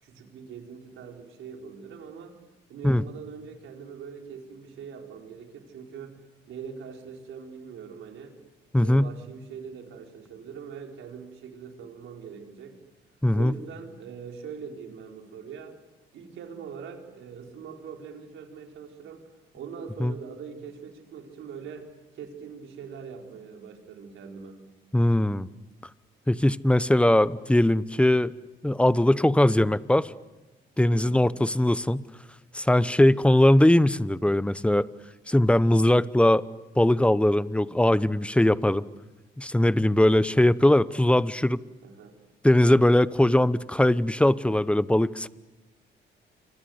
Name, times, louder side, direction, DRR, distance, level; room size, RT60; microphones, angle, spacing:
voice 1, 0.0-2.4 2.7-6.2 6.5-8.4 8.8-12.8 13.3-15.8 16.1-19.3 19.5-21.9 22.1-24.6 30.9-31.2 32.8-32.9 41.8-42.1, right 6 dB, 80° right, 2 dB, 4.5 m, -42 dB
voice 2, 8.7-9.1 13.2-13.5 20.0-20.1 24.9-25.5 26.3-28.3 28.6-30.1 30.8-32.0 32.5-34.9 35.3-36.4 36.8-38.8 39.4-41.6 42.4-45.3, left 1 dB, 5° left, 16 dB, 0.8 m, -20 dB
27.5 x 25.5 x 8.0 m, 1.1 s
cardioid pair, 90°, 20 cm